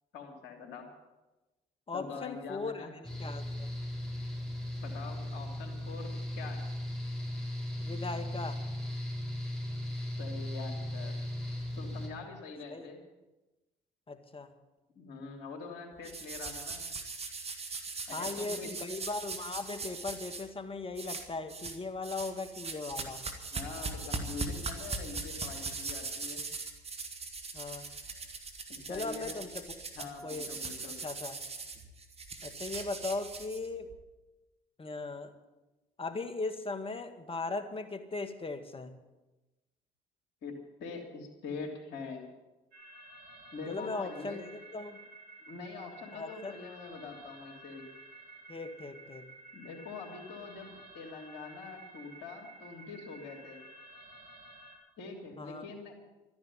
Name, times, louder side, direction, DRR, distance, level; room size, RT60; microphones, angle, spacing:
voice 1, 0.1-0.9 1.9-2.9 4.8-6.6 10.2-11.3 11.8-13.0 14.9-16.9 18.1-18.8 23.5-26.4 28.7-29.4 29.9-31.0 40.4-42.2 43.5-44.4 45.4-47.9 49.5-53.6 55.0-55.9, left 4 dB, 70° left, 2 dB, 3.2 m, -44 dB
voice 2, 1.9-3.7 7.8-8.6 12.7-12.9 14.1-14.5 18.1-23.2 27.5-27.9 28.9-29.7 30.2-30.5 31.0-31.4 32.4-33.9 34.8-35.3 36.0-38.9 43.7-45.0 46.1-46.6 48.5-49.3 55.4-55.7, left 3 dB, 30° left, 8 dB, 1.8 m, -38 dB
Mechanical fan, 3.0-12.1, left 1 dB, 5° left, 5.5 m, -37 dB
sound 1, 16.0-20.4 20.9-21.8 22.0-33.9, right 4 dB, 35° right, 2.2 m, -40 dB
sound 2, 42.7-54.8, right 2 dB, 85° right, 3.5 m, -52 dB
13.0 x 10.5 x 8.6 m, 1.1 s
hypercardioid pair, 55°, 18 cm